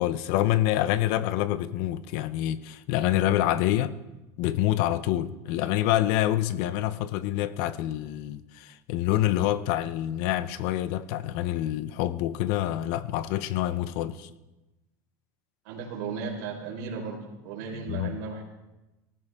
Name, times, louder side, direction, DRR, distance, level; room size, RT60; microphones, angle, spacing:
voice 1, 0.0-3.9 4.4-14.3 17.9-18.1, left 13 dB, 55° left, 0.7 m, -26 dB
voice 2, 15.6-18.4, right 5 dB, 75° right, 4.6 m, -35 dB
19.5 x 14.0 x 3.6 m
cardioid pair, 165°, 9 cm